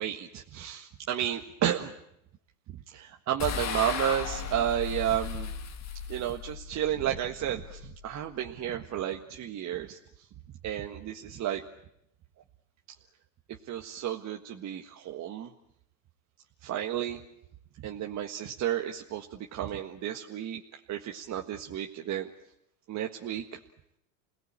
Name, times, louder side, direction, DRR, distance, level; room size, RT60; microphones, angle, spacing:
voice 1, 0.0-1.9 2.7-5.5 6.1-9.9 10.6-11.6 13.6-15.5 16.6-17.2 17.8-20.6 20.9-22.3 22.9-23.6, right 11 dB, 40° right, 2 dB, 1.7 m, -32 dB
sound 1, 3.4-8.8, left 7 dB, 40° left, 2.2 m, -37 dB
29.0 x 18.5 x 8.9 m, 0.80 s
supercardioid pair, 110°, 42 cm